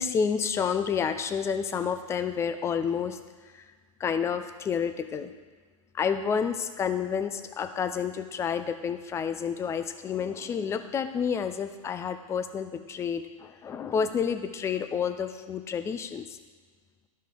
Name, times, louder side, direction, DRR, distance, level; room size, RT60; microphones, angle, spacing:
voice 1, 0.0-3.7 4.0-5.3 5.9-16.4, left 7 dB, 15° left, 9 dB, 0.5 m, -30 dB
12.0 x 5.3 x 3.8 m, 1.5 s
hypercardioid pair, 120°, 18 cm